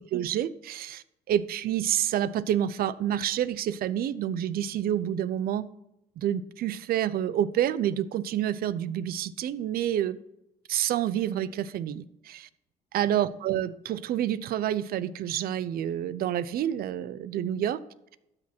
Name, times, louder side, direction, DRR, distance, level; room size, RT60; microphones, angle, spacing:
voice 1, 0.1-5.7 6.2-10.2 10.7-12.5 12.9-17.8, right 11 dB, 60° right, 16 dB, 0.6 m, -28 dB
12.5 x 6.3 x 4.4 m, 0.86 s
cardioid pair, 110°, 17 cm